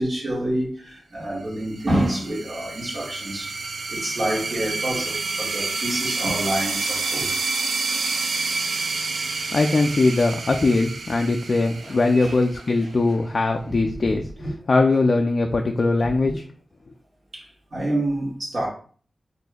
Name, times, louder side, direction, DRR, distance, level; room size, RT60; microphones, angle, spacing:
voice 1, 0.0-3.5 3.9-7.3 11.8-13.1 13.8-14.5 17.3-18.7, right 1 dB, 50° right, 1.5 m, -28 dB
sound 1, 1.6-12.9, right 4 dB, 85° right, 0.3 m, -29 dB
voice 2, 9.5-14.3 14.7-16.4, left 3 dB, 50° left, 0.3 m, -20 dB
4.2 x 2.6 x 2.3 m
wide cardioid pair, 80°, 0 cm